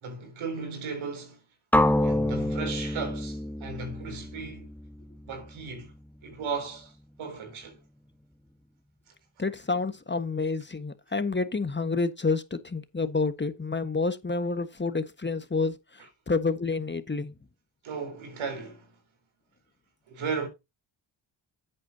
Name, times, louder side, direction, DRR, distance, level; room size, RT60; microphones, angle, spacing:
voice 1, 0.0-1.4 1.9-4.7 5.3-5.9 6.2-6.9 7.2-7.8 17.8-18.9 20.1-20.5, right 5 dB, 85° right, 4.0 m, -35 dB
sound 1, 1.7-5.7, left 1 dB, 5° left, 1.1 m, -27 dB
voice 2, 9.4-15.7 16.3-17.3, left 4 dB, 25° left, 1.4 m, -29 dB
10.5 x 8.5 x 2.7 m
cardioid pair, 70°, 47 cm